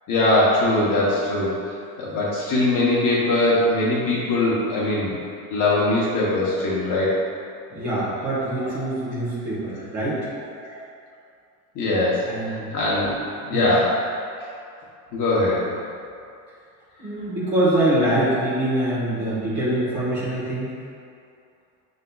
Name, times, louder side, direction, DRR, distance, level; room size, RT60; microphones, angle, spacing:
voice 1, 0.1-5.2 5.5-7.2 8.6-8.7 10.6-10.8 11.7-14.0 15.1-15.6, left 2 dB, 45° left, -6 dB, 0.9 m, -21 dB
voice 2, 7.7-10.2 12.2-12.7 13.5-13.7 17.0-20.7, right 1 dB, 40° right, -9 dB, 1.3 m, -24 dB
5.4 x 3.9 x 2.2 m, 2.5 s
supercardioid pair, 125°, 43 cm